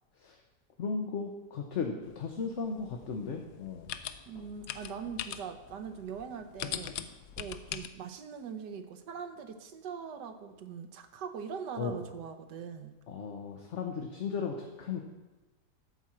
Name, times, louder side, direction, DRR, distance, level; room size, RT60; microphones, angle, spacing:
voice 1, 0.8-3.9 11.8-12.0 13.1-15.0, left 5 dB, 50° left, 3 dB, 1.0 m, -36 dB
sound 1, 2.0-7.9, left 10 dB, 75° left, 1.1 m, -42 dB
voice 2, 4.3-7.0 7.4-12.9, right 6 dB, 85° right, 8 dB, 1.5 m, -42 dB
13.0 x 4.4 x 7.5 m, 1.1 s
omnidirectional pair, 1.8 m